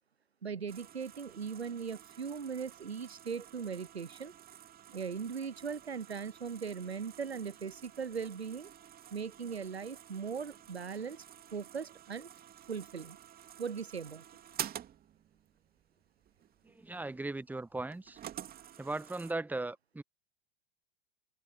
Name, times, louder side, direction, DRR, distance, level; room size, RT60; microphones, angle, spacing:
voice 1, 0.4-4.3 4.9-8.7 9.1-11.2 11.5-12.3 12.7-13.2 13.6-14.2, right 6 dB, 90° right, 0.6 m, -39 dB
sound 1, 0.7-19.3, right 10 dB, 30° right, 2.9 m, -50 dB
voice 2, 16.7-18.2 18.8-20.0, right 2 dB, 5° right, 1.2 m, -38 dB
figure-of-eight pair, 80°, 31 cm